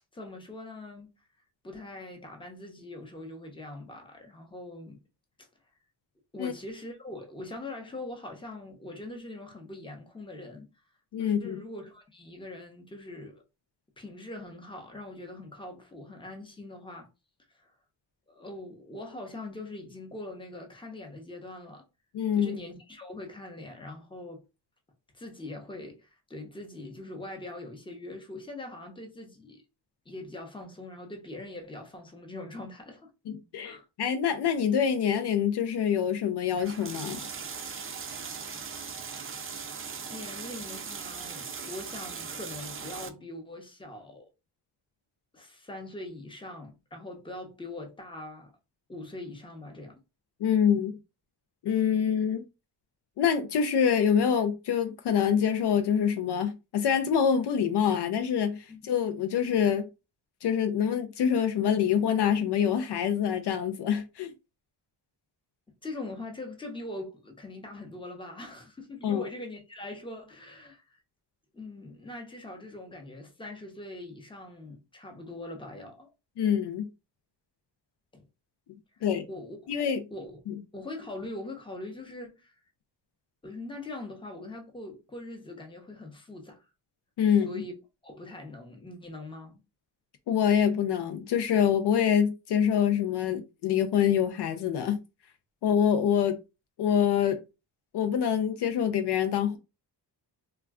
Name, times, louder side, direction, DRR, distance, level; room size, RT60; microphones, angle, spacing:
voice 1, 0.1-1.1 1.6-5.0 6.3-10.7 11.2-13.4 14.0-17.1 17.5-17.7 18.3-21.8 22.4-24.4 25.1-29.6 30.1-33.1 33.6-33.9 39.1-39.5 40.1-44.3 45.3-48.5 48.9-50.0 58.7-58.8 65.8-71.0 71.5-76.1 78.1-78.2 79.3-79.7 80.1-80.4 80.7-82.5 83.4-86.7 87.3-87.7 88.0-89.6, left 2 dB, 10° left, 0.8 m, -42 dB
voice 2, 11.1-11.6 22.1-22.6 33.3-37.2 50.4-51.0 51.6-52.4 53.2-59.9 60.4-64.3 69.0-69.2 76.4-76.9 79.0-79.2 79.7-80.0 80.5-80.6 87.2-87.6 90.3-95.0 95.6-96.4 96.8-97.4 97.9-99.6, left 8 dB, 65° left, 0.5 m, -25 dB
sound 1, 36.6-43.1, right 6 dB, 30° right, 0.5 m, -39 dB
2.2 x 2.2 x 3.5 m
cardioid pair, 95°, 43 cm